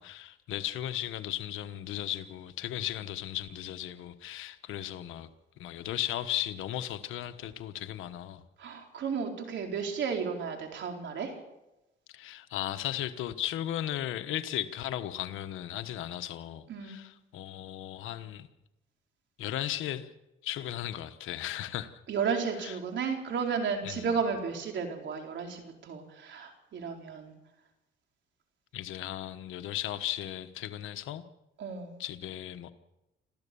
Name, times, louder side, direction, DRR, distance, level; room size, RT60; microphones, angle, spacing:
voice 1, 0.0-5.3 5.6-8.4 12.1-18.5 19.4-20.1 20.4-21.9 22.6-22.8 23.8-24.1 28.7-31.2 32.0-32.7, left 12 dB, 90° left, 10 dB, 1.2 m, -36 dB
voice 2, 8.6-11.3 16.7-17.0 22.1-27.3 31.6-31.9, right 6 dB, 65° right, 3 dB, 4.4 m, -33 dB
26.5 x 14.0 x 7.0 m, 0.96 s
cardioid pair, 90°, 20 cm